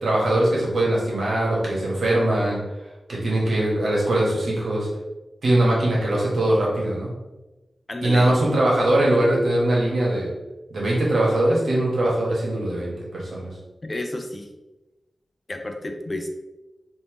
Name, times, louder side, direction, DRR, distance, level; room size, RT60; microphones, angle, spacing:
voice 1, 0.0-2.6 3.1-4.9 5.4-7.1 8.0-10.3 10.7-13.5, right 1 dB, 80° right, -4 dB, 1.1 m, -21 dB
voice 2, 7.9-8.4 13.8-14.5 15.5-16.3, left 1 dB, 30° left, 4 dB, 0.4 m, -31 dB
3.5 x 2.7 x 2.9 m, 1.1 s
wide cardioid pair, 90°, 0 cm